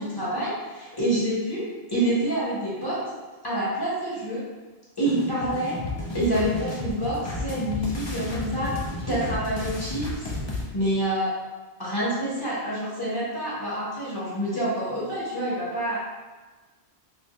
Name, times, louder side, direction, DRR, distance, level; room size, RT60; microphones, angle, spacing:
voice 1, 0.0-1.6 1.9-3.0 3.4-4.5 5.0-5.8 6.1-10.2 10.7-11.3 11.8-16.0, right 1 dB, 20° left, -8 dB, 1.0 m, -27 dB
sound 1, 5.1-10.6, left 2 dB, 45° left, 0.3 m, -32 dB
4.3 x 2.7 x 2.3 m, 1.3 s
omnidirectional pair, 1.1 m